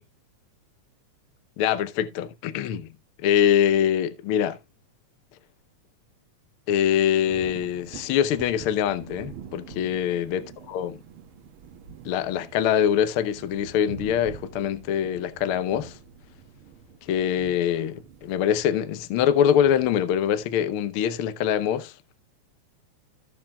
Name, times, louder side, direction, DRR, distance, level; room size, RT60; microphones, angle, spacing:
voice 1, 1.6-2.9 3.2-4.6 6.7-10.4 10.7-11.0 12.0-16.0 17.1-21.9, left 9 dB, 70° left, 1.3 m, -24 dB
sound 1, 7.3-20.5, right 6 dB, 60° right, 1.6 m, -46 dB
14.5 x 7.3 x 2.3 m
omnidirectional pair, 3.3 m